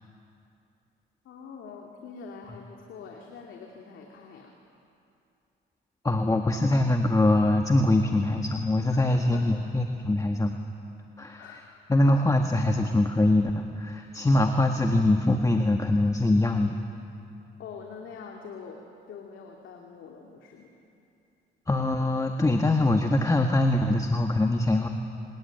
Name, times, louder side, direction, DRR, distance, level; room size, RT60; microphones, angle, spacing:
voice 1, 1.2-4.5 8.9-9.8 11.4-12.2 17.6-18.8 19.1-20.7, left 5 dB, 75° left, 0 dB, 2.5 m, -44 dB
voice 2, 6.0-10.5 11.2-11.6 11.9-16.8 21.7-24.9, left 2 dB, 15° left, 4 dB, 1.5 m, -23 dB
24.0 x 20.5 x 9.2 m, 2.7 s
cardioid pair, 90°, 20 cm